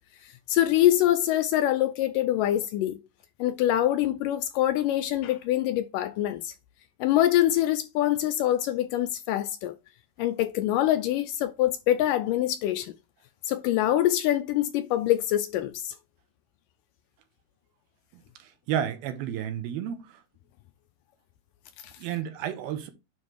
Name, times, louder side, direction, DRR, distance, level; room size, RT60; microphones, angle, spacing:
voice 1, 0.5-3.0 3.4-6.5 7.0-9.7 10.2-12.9 13.5-15.9, left 13 dB, 80° left, 2.0 m, -24 dB
voice 2, 18.7-20.0 22.0-22.9, right 10 dB, 85° right, 2.9 m, -31 dB
9.5 x 3.4 x 4.5 m
omnidirectional pair, 4.3 m